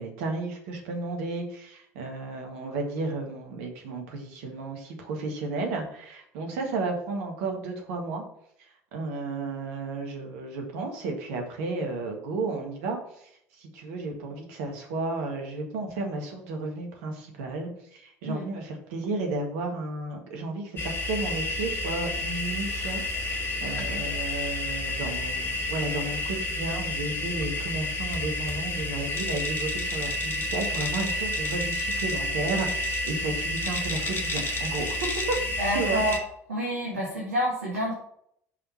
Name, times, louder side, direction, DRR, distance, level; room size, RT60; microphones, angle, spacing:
voice 1, 0.0-8.2 8.9-35.0 35.3-35.4 35.7-36.0, right 3 dB, 65° right, 2 dB, 1.7 m, -33 dB
sound 1, 20.8-36.2, left 1 dB, 30° left, 1.7 m, -30 dB
voice 2, 35.6-36.2 36.5-37.9, equal, 80° right, -3 dB, 1.5 m, -28 dB
5.8 x 5.1 x 5.6 m, 0.70 s
figure-of-eight pair, 60°, 8 cm